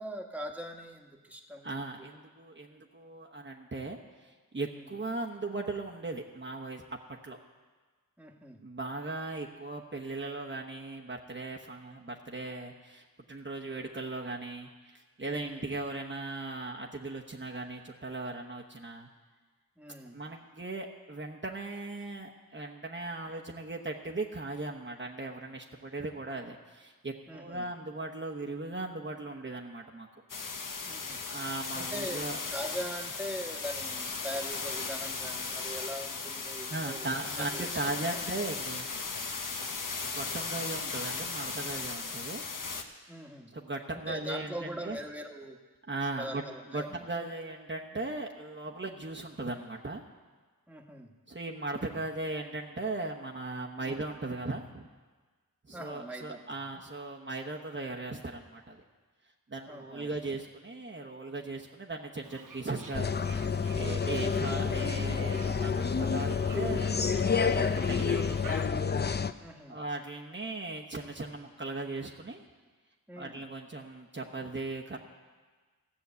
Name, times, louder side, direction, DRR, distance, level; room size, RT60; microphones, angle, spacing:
voice 1, 0.0-2.1 4.7-4.9 8.2-8.6 15.3-15.7 19.8-20.2 27.3-27.7 30.8-31.2 31.8-37.1 37.4-38.2 43.1-43.5 43.9-45.6 46.2-47.0 50.7-51.1 53.8-54.0 55.7-56.4 59.7-60.1 67.6-67.9 69.4-69.8 73.1-73.4, equal, 5° right, 2 dB, 1.3 m, -42 dB
voice 2, 1.6-6.8 7.2-7.4 8.6-19.1 20.1-30.2 31.3-32.4 36.7-38.9 40.0-42.5 43.5-45.0 45.9-46.4 46.7-50.0 51.3-54.9 55.7-58.8 59.5-63.1 63.7-66.9 67.2-68.2 69.7-72.4 73.2-75.0, right 2 dB, 30° right, -1 dB, 1.0 m, -38 dB
sound 1, 30.3-42.8, left 4 dB, 60° left, 1.0 m, -37 dB
Fowl, 62.2-68.7, right 4 dB, 60° right, 1.0 m, -50 dB
sound 2, 62.9-69.3, left 6 dB, 30° left, 0.5 m, -29 dB
14.5 x 6.3 x 8.2 m, 1.4 s
cardioid pair, 45°, 37 cm